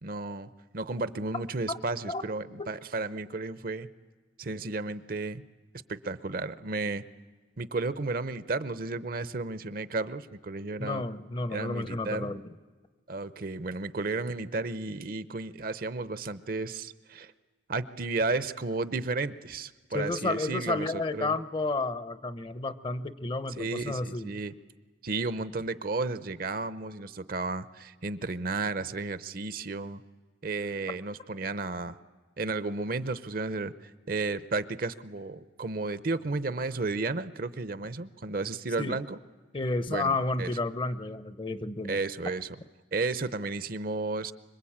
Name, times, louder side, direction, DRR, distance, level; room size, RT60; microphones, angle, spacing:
voice 1, 0.0-3.9 4.4-5.4 5.9-7.0 7.6-11.0 11.5-12.3 13.1-17.3 17.7-20.9 21.2-21.3 23.6-24.5 25.0-30.0 30.4-32.0 32.4-39.2 39.9-40.1 40.4-40.5 41.9-42.5 42.9-44.3, right 3 dB, 50° right, 15 dB, 0.7 m, -33 dB
voice 2, 10.8-12.6 19.9-24.3 38.8-39.0 39.5-42.0, left 2 dB, 25° left, 13 dB, 0.7 m, -31 dB
25.5 x 22.5 x 8.7 m, 1.3 s
head